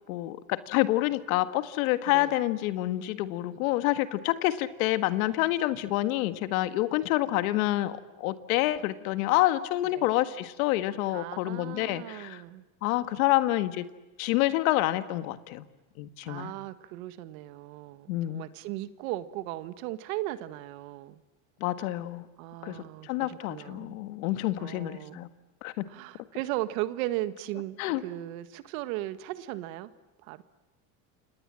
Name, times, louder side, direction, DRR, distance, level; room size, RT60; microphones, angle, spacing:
voice 1, 0.1-12.4 12.8-13.9 14.2-15.7 16.0-16.5 18.1-18.5 21.6-22.2 22.6-25.3 25.6-25.8 27.8-28.0, left 16 dB, 85° left, 11 dB, 1.8 m, -28 dB
voice 2, 11.1-12.6 16.2-21.2 22.4-24.0 24.6-25.2 25.9-27.8 28.0-29.9 30.2-30.4, right 16 dB, 85° right, 13 dB, 1.7 m, -37 dB
29.5 x 26.5 x 7.7 m, 1.1 s
supercardioid pair, 100°, 41 cm